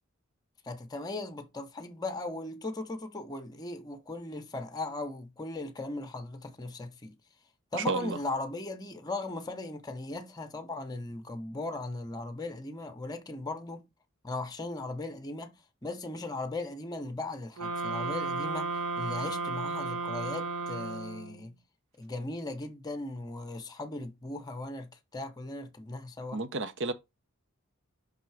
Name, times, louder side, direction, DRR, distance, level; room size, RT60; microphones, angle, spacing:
voice 1, 0.6-7.2 7.7-13.9 14.2-15.6 15.8-21.5 22.0-26.4, left 2 dB, 20° left, 0.8 m, -38 dB
voice 2, 7.7-8.2 26.3-26.9, right 3 dB, 60° right, 0.9 m, -31 dB
sound 1, 17.6-21.5, right 4 dB, 85° right, 1.4 m, -34 dB
5.5 x 3.7 x 4.6 m
head